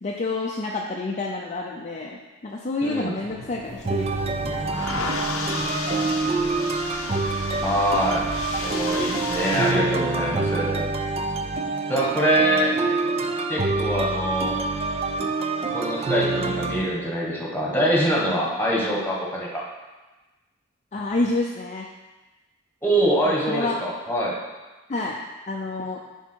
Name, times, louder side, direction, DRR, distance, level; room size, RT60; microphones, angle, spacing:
voice 1, 0.0-4.1 4.4-5.5 5.9-6.2 20.9-21.9 23.3-23.8 24.9-25.2 25.5-26.0, left 2 dB, 35° left, -1 dB, 0.5 m, -29 dB
voice 2, 2.8-3.1 7.6-8.3 8.6-10.8 11.9-12.7 13.5-14.6 15.7-19.6 22.8-24.4, right 1 dB, 10° left, -3 dB, 1.4 m, -24 dB
sound 1, 3.1-15.9, equal, 5° right, 1.5 m, -40 dB
sound 2, 3.6-9.7, left 4 dB, 80° left, 0.7 m, -33 dB
sound 3, 3.8-16.8, right 3 dB, 30° right, 0.4 m, -26 dB
10.5 x 3.6 x 4.5 m, 1.2 s
head